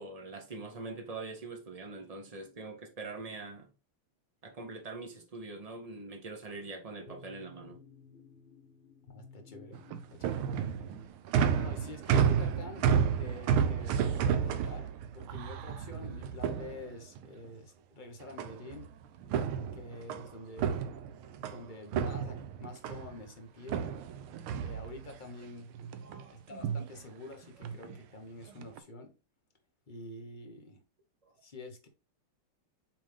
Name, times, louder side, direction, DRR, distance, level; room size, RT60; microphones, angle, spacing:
voice 1, 0.0-3.7 4.4-7.8 23.7-23.9 26.0-26.4, right 3 dB, 60° right, 0.4 m, -43 dB
sound 1, 7.0-11.1, left 5 dB, 60° left, 0.5 m, -55 dB
voice 2, 9.1-10.5 11.4-18.9 19.7-20.9 21.5-23.9 24.6-25.8 26.3-29.2 29.9-30.8 31.4-31.9, left 2 dB, 30° left, 1.0 m, -47 dB
sound 2, 9.7-17.3 18.4-18.9 19.2-21.6 21.9-23.2 23.7-25.3 25.7-26.2 26.5-26.9 27.6-28.0 28.5-28.8, right 7 dB, 85° right, 1.6 m, -31 dB
7.5 x 3.6 x 3.5 m
omnidirectional pair, 2.3 m